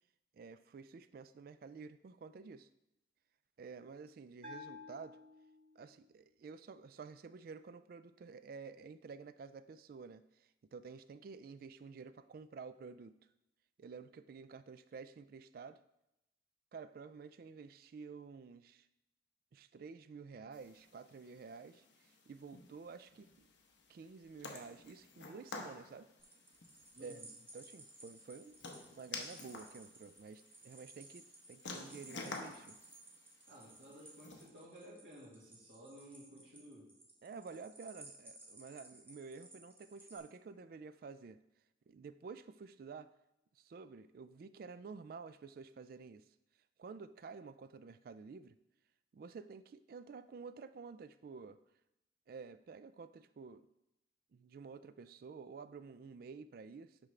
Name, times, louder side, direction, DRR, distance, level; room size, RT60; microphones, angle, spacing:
voice 1, 0.3-2.7 3.6-5.2 5.8-13.2 13.8-15.8 16.7-18.9 19.5-23.5 23.9-26.1 27.0-27.2 27.5-32.8 37.2-41.4 41.9-43.1 43.6-46.2 46.8-48.6 49.1-51.6 52.3-53.6 54.3-57.0, right 5 dB, 55° right, 13 dB, 0.3 m, -51 dB
Bell, 4.4-6.0, left 3 dB, 35° right, 1.3 m, -52 dB
sound 1, 20.5-34.5, left 3 dB, 90° left, 0.9 m, -51 dB
sound 2, 26.2-40.2, right 2 dB, 10° right, 1.0 m, -58 dB
voice 2, 26.9-27.3 33.5-36.9, equal, 80° right, -6 dB, 2.1 m, -55 dB
10.5 x 3.8 x 3.2 m, 0.86 s
head